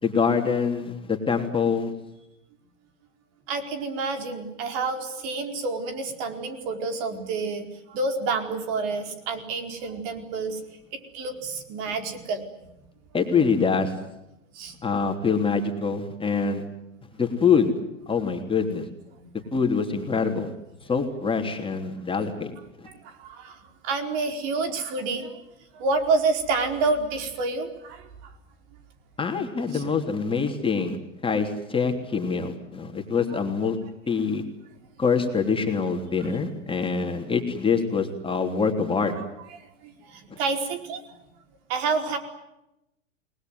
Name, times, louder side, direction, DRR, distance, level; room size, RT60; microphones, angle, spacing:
voice 1, 0.0-1.9 13.1-13.9 14.8-16.6 17.1-17.7 18.1-18.9 19.5-20.5 20.9-22.5 29.2-31.0 31.2-33.8 34.1-34.4 35.0-39.1, left 5 dB, 15° left, 3 dB, 3.3 m, -25 dB
voice 2, 3.5-10.6 11.1-12.7 14.5-14.8 19.2-19.4 22.8-25.4 25.7-28.3 29.7-29.8 39.2-39.3 39.8-41.2 41.7-42.2, right 3 dB, 50° right, 6 dB, 4.7 m, -29 dB
29.0 x 20.5 x 9.5 m, 0.90 s
hypercardioid pair, 115°, 38 cm